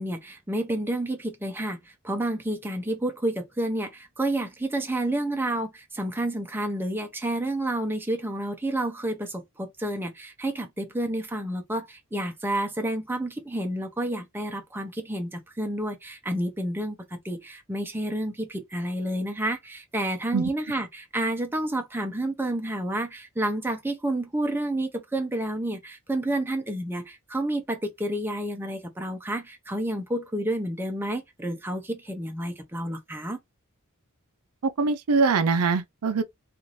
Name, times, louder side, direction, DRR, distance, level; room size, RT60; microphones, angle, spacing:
voice 1, 0.0-33.4, right 1 dB, 10° right, 0.6 m, -30 dB
voice 2, 34.6-36.2, right 4 dB, 90° right, 0.5 m, -23 dB
2.6 x 2.5 x 3.0 m
head